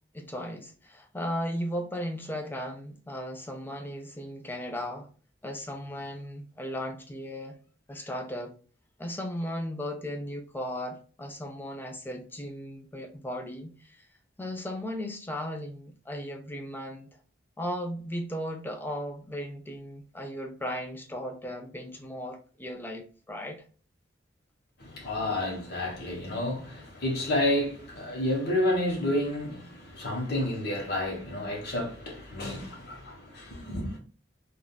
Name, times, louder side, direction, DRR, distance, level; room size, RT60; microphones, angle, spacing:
voice 1, 0.1-5.1 5.4-7.6 7.9-8.6 9.0-14.1 14.4-17.1 17.6-23.6, equal, 10° left, 0.4 m, -36 dB
voice 2, 24.8-34.0, left 1 dB, 60° left, 1.1 m, -30 dB
3.5 x 2.3 x 2.2 m
head